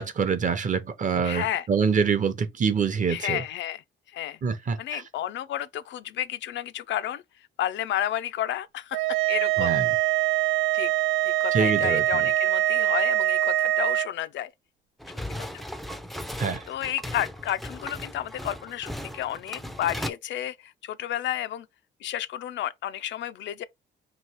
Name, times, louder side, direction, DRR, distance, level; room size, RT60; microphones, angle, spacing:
voice 1, 0.0-3.4 4.4-5.0 9.6-9.8 11.5-12.3 16.4-16.6, right 6 dB, 40° right, 0.8 m, -25 dB
voice 2, 1.2-1.7 3.1-3.8 4.1-4.4 4.8-7.2 7.6-9.0 9.3-9.8 10.7-10.9 11.3-14.5 15.4-15.6 16.7-21.7 22.0-23.6, left 12 dB, 70° left, 0.4 m, -31 dB
sound 1, 8.9-14.1, right 15 dB, 80° right, 0.5 m, -23 dB
sound 2, 15.0-20.1, equal, ahead, 0.4 m, -37 dB
3.1 x 2.8 x 4.4 m
cardioid pair, 90°, 20 cm